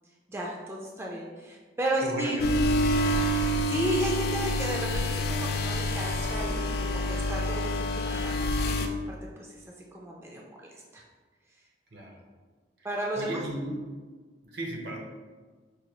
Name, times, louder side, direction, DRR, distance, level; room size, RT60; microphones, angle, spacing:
voice 1, 0.3-2.5 3.6-9.6 9.9-10.5 10.9-11.0 12.8-13.4, right 1 dB, 15° right, -2 dB, 0.3 m, -33 dB
voice 2, 2.0-3.2 11.9-12.2 13.2-13.7 14.4-15.0, right 1 dB, 65° right, 0 dB, 0.8 m, -36 dB
sound 1, 2.4-8.9, left 1 dB, 60° left, 0.3 m, -27 dB
4.8 x 2.3 x 3.0 m, 1.4 s
head